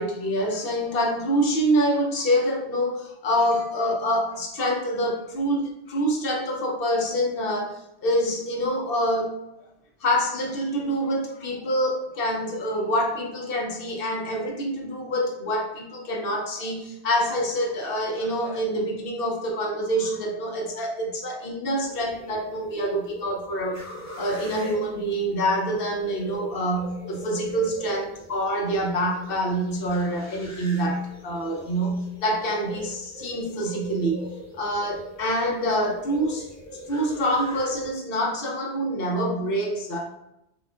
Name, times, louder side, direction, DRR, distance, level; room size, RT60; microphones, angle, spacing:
voice 1, 0.0-9.4 10.0-23.9 24.2-36.5 36.9-40.1, equal, 60° left, 0 dB, 0.9 m, -26 dB
sound 1, 21.8-37.9, left 1 dB, 20° left, 0.6 m, -42 dB
4.4 x 2.5 x 2.3 m, 0.85 s
omnidirectional pair, 1.1 m